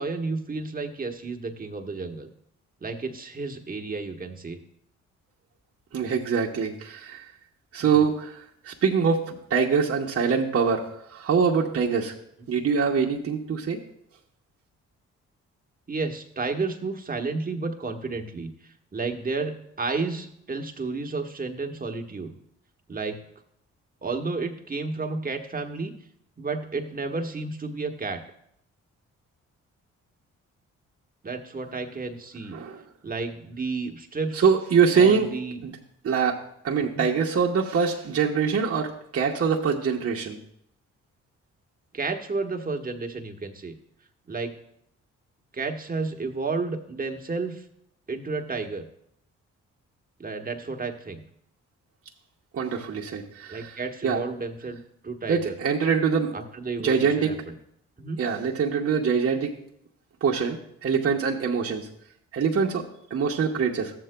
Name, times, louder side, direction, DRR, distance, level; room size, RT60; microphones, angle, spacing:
voice 1, 0.0-2.3 2.8-4.6 7.9-8.0 15.9-18.5 18.9-22.4 22.9-23.2 24.0-25.9 26.4-28.2 31.2-32.6 33.0-34.4 35.0-35.6 36.8-37.0 41.9-43.7 44.3-44.6 45.5-47.6 48.1-48.9 50.2-51.2 53.5-55.5 56.3-57.4 58.0-58.2, right 3 dB, 25° right, 3 dB, 1.2 m, -31 dB
voice 2, 5.9-7.2 7.7-12.1 12.5-13.8 32.5-32.8 34.3-35.3 35.6-35.7 36.0-40.4 52.5-53.8 54.0-54.2 55.3-56.4 56.8-57.4 58.2-59.6 60.2-61.9 62.3-63.9, right 6 dB, 45° right, -1 dB, 1.0 m, -24 dB
13.5 x 7.7 x 2.2 m, 0.73 s
supercardioid pair, 55°, 32 cm